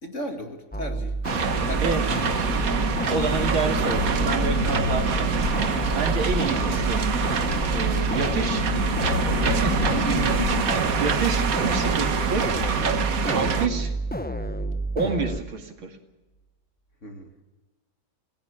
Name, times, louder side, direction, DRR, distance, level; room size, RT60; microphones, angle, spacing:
voice 1, 0.0-1.2 1.5-2.6 13.2-13.6 17.0-17.4, left 1 dB, 35° left, 5 dB, 2.5 m, -36 dB
sound 1, 0.7-15.4, right 2 dB, 10° left, 0.4 m, -30 dB
sound 2, 1.2-13.7, right 6 dB, 50° right, 1.6 m, -25 dB
sound 3, 1.4-10.6, left 6 dB, 70° left, 2.2 m, -31 dB
voice 2, 3.1-5.5 5.9-7.0 7.7-8.7 9.4-12.4 13.3-13.9 14.9-16.0, right 5 dB, 80° right, 5 dB, 3.2 m, -29 dB
28.0 x 17.5 x 7.0 m, 1.1 s
omnidirectional pair, 2.2 m